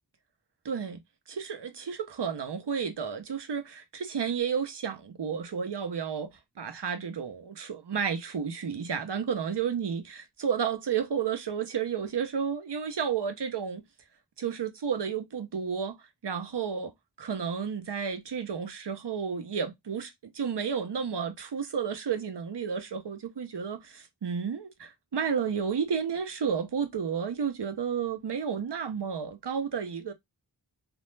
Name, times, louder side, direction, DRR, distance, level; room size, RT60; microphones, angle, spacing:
voice 1, 0.6-1.0 1.3-6.3 6.6-13.8 14.4-16.0 16.2-16.9 17.2-30.1, right 7 dB, 70° right, 0.7 m, -32 dB
2.5 x 2.0 x 3.1 m
wide cardioid pair, 60°, 43 cm